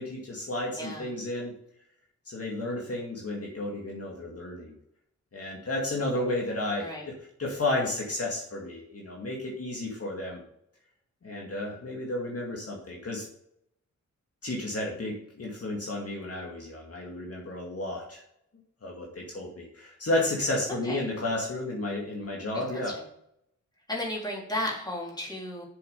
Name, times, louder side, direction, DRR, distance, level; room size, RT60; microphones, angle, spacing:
voice 1, 0.0-1.5 2.3-4.7 5.3-7.1 7.4-10.4 11.2-13.3 14.4-18.2 18.8-23.0, left 2 dB, 50° left, -2 dB, 2.2 m, -32 dB
voice 2, 0.8-1.1 6.8-7.0 20.8-21.1 22.5-23.0 23.9-25.6, left 1 dB, 15° left, -3 dB, 3.7 m, -34 dB
7.7 x 7.1 x 5.2 m, 0.73 s
wide cardioid pair, 110°, 30 cm